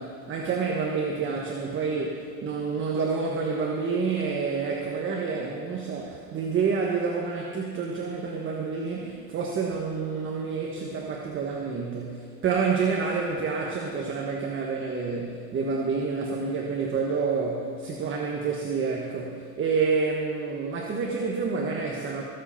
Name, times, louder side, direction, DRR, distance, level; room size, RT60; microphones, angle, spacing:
voice 1, 0.0-22.2, right 5 dB, 25° right, -1 dB, 1.4 m, -28 dB
19.5 x 7.8 x 5.9 m, 2.1 s
supercardioid pair, 125°, 43 cm